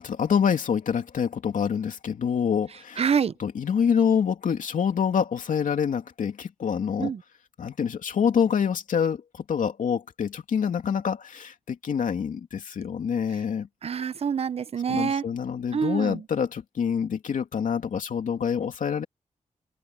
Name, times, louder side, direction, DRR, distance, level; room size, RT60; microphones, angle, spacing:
voice 1, 0.0-3.0 3.4-7.1 7.6-13.7 14.9-19.0, left 7 dB, 90° left, 2.7 m, -26 dB
voice 2, 3.0-3.3 7.0-7.2 13.8-15.2 15.7-16.2, right 7 dB, 50° right, 0.6 m, -26 dB
open air
wide cardioid pair, 150°, 13 cm